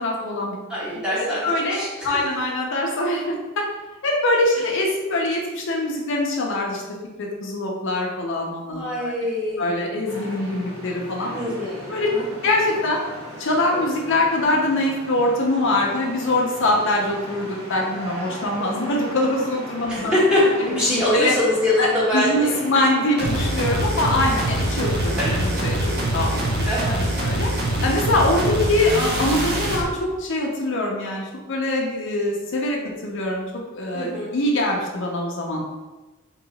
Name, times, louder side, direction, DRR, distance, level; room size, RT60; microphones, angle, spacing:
voice 1, 0.0-0.6 1.2-3.7 4.0-6.8 7.2-9.1 9.6-11.4 11.9-13.0 13.4-20.1 20.7-21.3 21.8-21.9 22.1-27.5 27.8-33.4 33.7-35.6, left 1 dB, 60° left, -1 dB, 0.6 m, -23 dB
voice 2, 0.7-2.2 8.7-9.8 11.3-12.2 19.9-22.5 25.2-25.5 26.6-27.1 27.5-27.8 33.9-34.3, left 1 dB, 5° right, -8 dB, 1.2 m, -24 dB
sound 1, 10.0-27.1, equal, 70° right, 1.3 m, -37 dB
sound 2, 23.2-29.9, right 1 dB, 50° right, 0.7 m, -24 dB
2.9 x 2.8 x 4.0 m, 1.2 s
head